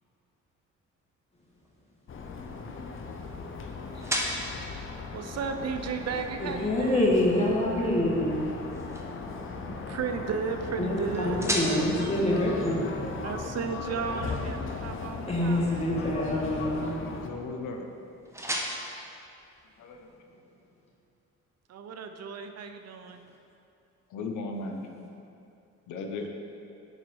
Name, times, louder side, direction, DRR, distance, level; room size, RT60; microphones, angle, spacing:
sound 1, 1.4-20.2, equal, 10° right, 1.1 m, -40 dB
sound 2, 2.1-17.3, left 4 dB, 45° left, 0.8 m, -37 dB
voice 1, 5.1-7.1 9.7-11.4 12.0-12.1 13.2-15.9 21.7-23.2, right 6 dB, 60° right, 6 dB, 0.6 m, -34 dB
voice 2, 6.4-8.4 10.8-13.0 15.3-17.0, left 1 dB, 20° left, -4 dB, 1.8 m, -26 dB
voice 3, 17.0-17.9 19.8-20.1 24.1-24.9 25.9-26.3, left 3 dB, 80° left, 3 dB, 0.8 m, -36 dB
9.6 x 4.0 x 4.7 m, 2.6 s
cardioid pair, 90°, 30 cm